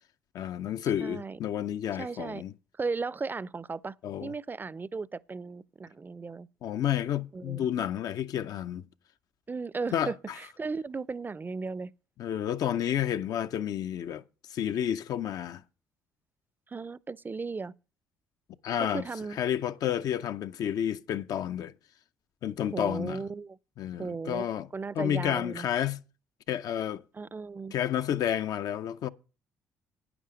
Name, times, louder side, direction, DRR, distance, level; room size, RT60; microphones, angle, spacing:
voice 1, 0.3-2.5 4.0-4.3 6.6-8.8 9.9-10.1 12.2-14.2 14.5-15.6 18.6-19.1 19.3-21.7 22.4-23.2 23.8-24.7 25.0-26.0 26.5-27.0 27.7-29.1, left 10 dB, 65° left, 0.6 m, -30 dB
voice 2, 1.0-1.4 2.0-2.4 2.8-3.9 4.2-6.5 7.3-7.7 9.5-11.9 16.7-17.7 18.8-19.4 22.7-23.6 24.0-24.5 24.7-25.7 27.1-27.7, right 4 dB, 30° right, 0.5 m, -36 dB
11.0 x 9.6 x 5.0 m
hypercardioid pair, 55°, 7 cm